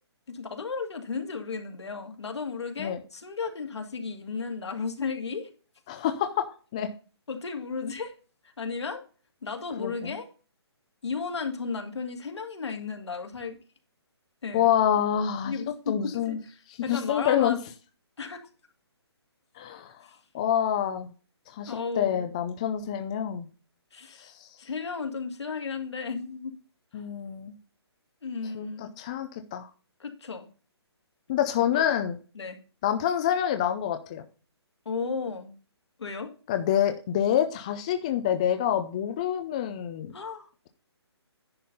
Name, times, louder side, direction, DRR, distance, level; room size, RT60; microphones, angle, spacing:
voice 1, 0.3-5.5 7.3-8.1 8.6-9.0 9.4-10.3 11.0-13.6 14.4-14.7 15.4-16.4 16.8-17.6 18.2-18.4 20.0-20.2 21.7-22.3 23.9-24.3 24.6-26.5 26.9-27.0 28.2-29.0 30.0-30.5 31.7-31.8 32.4-32.6 34.9-35.5 36.0-36.3 40.1-40.5, left 5 dB, 75° left, 5 dB, 2.1 m, -34 dB
voice 2, 5.9-6.5 6.7-6.9 9.8-10.2 14.5-15.6 15.9-16.4 16.7-17.6 19.6-20.0 20.3-21.1 21.5-23.5 24.2-24.5 26.9-27.5 28.5-29.7 31.3-32.1 32.8-34.2 36.5-40.1, left 10 dB, 15° left, 8 dB, 0.4 m, -27 dB
10.5 x 4.2 x 5.2 m, 0.36 s
hypercardioid pair, 165°, 14 cm